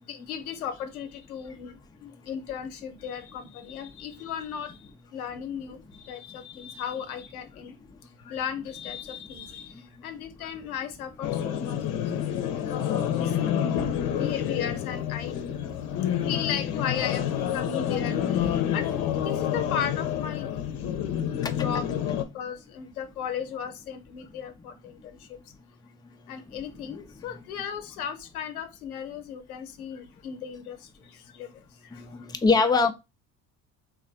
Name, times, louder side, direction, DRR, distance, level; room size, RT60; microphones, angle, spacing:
voice 1, 0.1-4.8 5.1-7.7 8.3-11.8 12.3-13.3 13.7-15.7 16.0-20.5 21.2-25.4 26.3-31.5 31.9-32.2, left 8 dB, 90° left, 0.7 m, -36 dB
sound 1, 11.2-22.2, left 9 dB, 55° left, 0.7 m, -28 dB
voice 2, 13.7-14.1 21.4-21.5 31.9-32.9, left 4 dB, 10° left, 0.5 m, -24 dB
3.2 x 2.5 x 3.9 m
hypercardioid pair, 65°, 42 cm